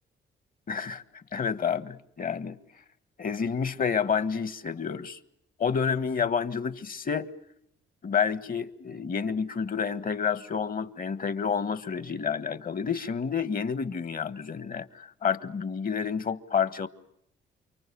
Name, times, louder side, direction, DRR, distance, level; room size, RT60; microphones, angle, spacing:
voice 1, 0.7-1.0 1.3-2.6 3.2-5.2 5.6-7.3 8.0-16.9, left 6 dB, 45° left, 1.5 m, -29 dB
29.0 x 24.5 x 7.0 m
cardioid pair, 90°, 20 cm